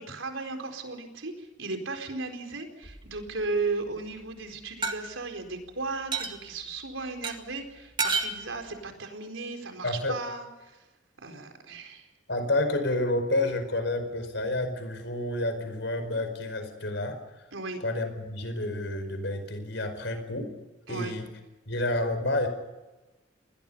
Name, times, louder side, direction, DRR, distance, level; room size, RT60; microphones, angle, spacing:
voice 1, 0.0-10.8 11.2-12.1 17.5-17.8 20.9-21.1, right 3 dB, 90° right, 5 dB, 4.4 m, -35 dB
sound 1, 2.8-3.5 4.8-4.9 6.1-6.4 7.2-7.3 8.0-8.4, right 4 dB, 25° right, 2.0 m, -29 dB
voice 2, 9.8-10.2 12.3-17.2 17.8-20.5 20.9-21.3 21.7-22.5, left 1 dB, 65° left, 8 dB, 5.0 m, -29 dB
29.5 x 21.0 x 5.6 m, 1.1 s
head